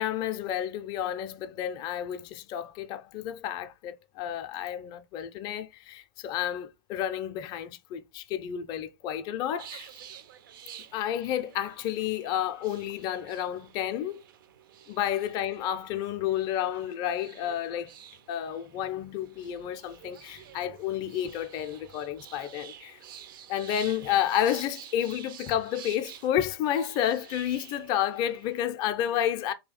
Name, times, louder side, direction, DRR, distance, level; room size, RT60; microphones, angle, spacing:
voice 1, 0.0-9.9 10.9-14.2 14.9-17.9 18.3-23.0 23.5-29.5, left 10 dB, 30° left, 0.4 m, -31 dB
sound 1, 9.6-28.7, right 9 dB, 55° right, 0.4 m, -50 dB
2.7 x 2.3 x 4.0 m
hypercardioid pair, 110°, 13 cm